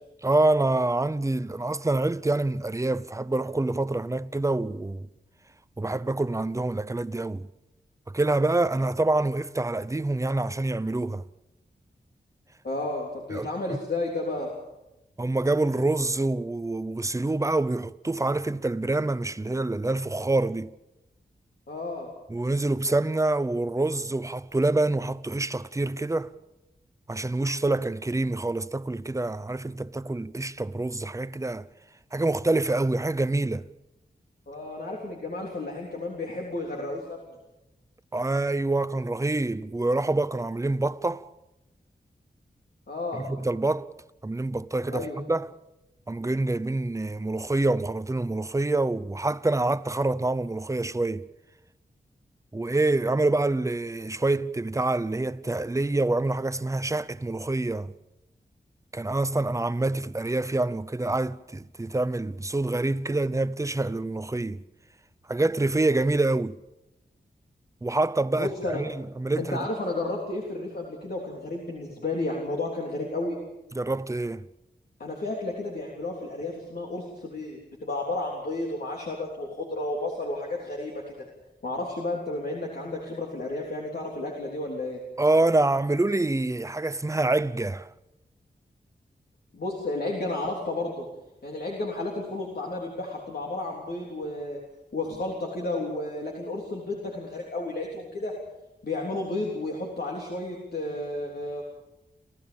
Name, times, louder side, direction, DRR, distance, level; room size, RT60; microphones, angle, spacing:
voice 1, 0.2-5.1 5.8-7.5 8.1-11.2 13.3-13.8 15.2-20.7 22.3-26.3 27.1-31.7 32.1-33.7 38.1-41.3 43.1-43.9 44.2-45.5 46.1-51.2 52.5-57.9 58.9-64.6 65.3-66.6 67.8-69.7 73.7-74.4 85.2-87.9, right 2 dB, 15° right, 0.7 m, -26 dB
voice 2, 12.6-14.5 21.7-22.1 34.5-37.3 42.9-43.2 44.9-45.2 68.4-68.8 69.4-73.4 75.0-81.2 81.6-85.0 89.5-91.1 91.4-94.6 94.9-98.3 98.8-101.6, left 2 dB, 60° left, 3.6 m, -32 dB
28.0 x 15.0 x 7.1 m
wide cardioid pair, 75°, 18 cm